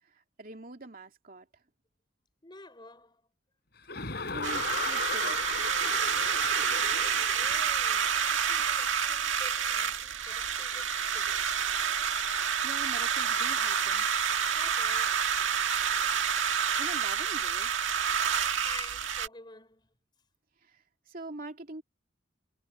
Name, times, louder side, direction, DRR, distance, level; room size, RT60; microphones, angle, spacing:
voice 1, 0.0-1.5 4.3-5.5 12.6-14.1 16.8-17.7 20.6-21.8, right 2 dB, 45° right, 2.8 m, -44 dB
voice 2, 2.4-3.3 6.8-11.4 14.4-15.3 18.3-19.9, left 3 dB, 25° left, 5.4 m, -50 dB
Chuckle chortle, 3.9-7.6, left 4 dB, 55° left, 3.9 m, -36 dB
sound 1, 4.4-19.3, right 7 dB, 80° right, 1.7 m, -28 dB
head